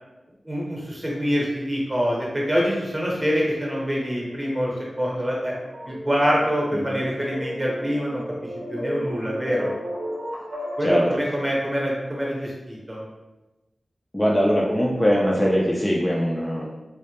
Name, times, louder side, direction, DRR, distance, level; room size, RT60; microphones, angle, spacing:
voice 1, 0.4-4.7 5.0-5.5 5.9-8.2 8.7-9.7 10.8-13.0, equal, 25° right, -4 dB, 0.8 m, -25 dB
sound 1, 4.0-11.3, equal, 80° right, 0.6 m, -35 dB
voice 2, 14.1-16.7, equal, 15° left, -4 dB, 0.4 m, -21 dB
2.1 x 2.0 x 2.8 m, 1.1 s
cardioid pair, 55°, 0 cm